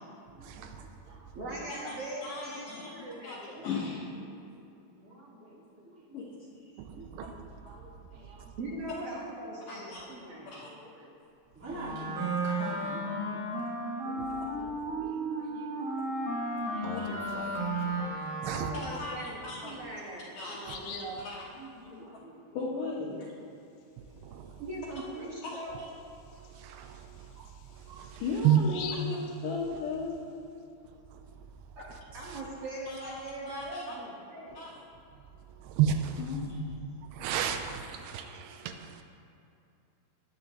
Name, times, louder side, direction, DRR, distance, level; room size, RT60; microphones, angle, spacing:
voice 1, 0.5-1.2 2.6-2.8 3.4-3.6 4.2-4.5 4.9-6.2 6.9-7.4 7.6-8.4 9.8-9.9 10.6-11.1 11.5-13.4 14.0-17.2 17.5-17.8 21.5-22.8, right 1 dB, 10° right, -8 dB, 0.8 m, -48 dB
voice 2, 1.3-3.6 8.6-10.6 18.4-21.2 24.6-25.8 28.9-29.0 31.7-31.9 32.1-34.6, right 1 dB, 60° right, -5 dB, 1.5 m, -40 dB
voice 3, 2.2-3.4 3.6-4.1 6.1-6.3 6.6-6.8 9.7-10.1 10.5-10.7 18.9-19.8 20.4-20.6 21.2-21.4 22.6-23.3 25.4-25.6 28.2-29.1 29.4-30.3 32.9-34.0 34.5-34.8 36.2-36.6, left 4 dB, 65° left, -4 dB, 2.3 m, -37 dB
Wind instrument woodwind instrument, 11.7-18.9, right 2 dB, 30° right, 3.9 m, -34 dB
Bird vocalization bird call bird song, 16.6-18.1 19.5-19.6 20.1-20.2 20.5-21.2 24.7-24.9 25.2-25.3 25.9-30.1, left 7 dB, 85° left, 3.1 m, -45 dB
voice 4, 26.6-27.0 27.9-28.6 35.6-36.2 37.1-39.0, right 10 dB, 80° right, 6 dB, 2.6 m, -30 dB
19.0 x 10.0 x 3.1 m, 2.7 s
omnidirectional pair, 4.9 m